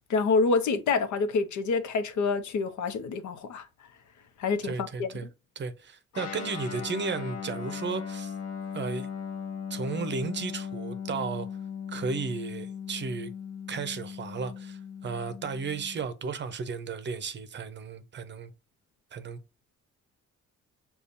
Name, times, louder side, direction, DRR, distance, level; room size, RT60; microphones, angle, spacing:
voice 1, 0.1-3.6 4.4-5.1, left 4 dB, 80° left, 0.8 m, -27 dB
voice 2, 4.6-5.3 5.6-8.3 8.7-9.1 9.7-11.5 11.9-13.3 13.7-18.5 19.1-19.4, right 5 dB, 40° right, 0.6 m, -34 dB
Guitar, 6.1-16.0, left 7 dB, 55° left, 1.1 m, -38 dB
6.8 x 2.4 x 2.6 m
cardioid pair, 125°, 29 cm